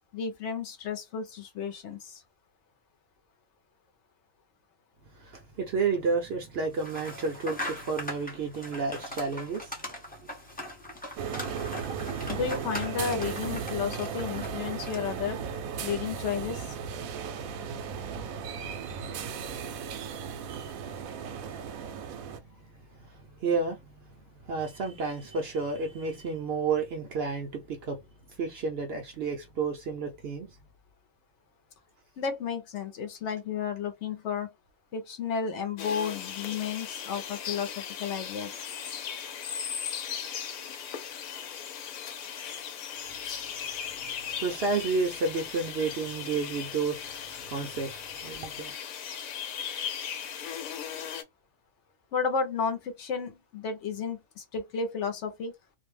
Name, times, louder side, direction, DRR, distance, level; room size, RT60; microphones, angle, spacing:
voice 1, 0.1-2.2 12.3-15.4 15.8-16.8 32.2-34.5 34.9-38.7 52.1-55.5, left 6 dB, 65° left, 0.9 m, -32 dB
voice 2, 5.1-10.3 22.1-24.1 24.4-28.0 28.4-30.6 43.0-48.7, right 4 dB, 65° right, 0.7 m, -32 dB
sound 1, 6.8-15.2, left 1 dB, 10° left, 0.4 m, -40 dB
sound 2, 11.2-22.4, right 6 dB, 85° right, 1.0 m, -36 dB
sound 3, 35.8-51.2, left 8 dB, 85° left, 1.0 m, -38 dB
2.5 x 2.0 x 3.2 m
omnidirectional pair, 1.4 m